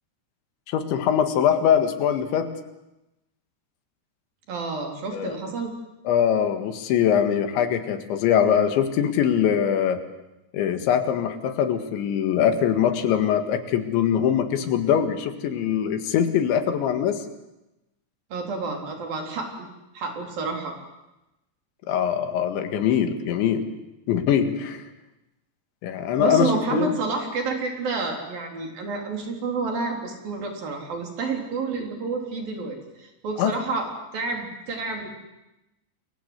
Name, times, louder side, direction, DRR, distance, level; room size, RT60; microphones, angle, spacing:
voice 1, 0.7-2.5 5.1-5.3 6.1-10.0 10.5-17.3 21.9-23.7 24.1-24.9 25.8-27.0 33.4-33.5, left 8 dB, 90° left, 7 dB, 4.1 m, -22 dB
voice 2, 4.5-5.7 18.3-19.7 19.9-20.8 26.2-35.1, right 4 dB, 55° right, 2 dB, 5.4 m, -29 dB
28.5 x 22.5 x 8.1 m, 0.96 s
omnidirectional pair, 5.1 m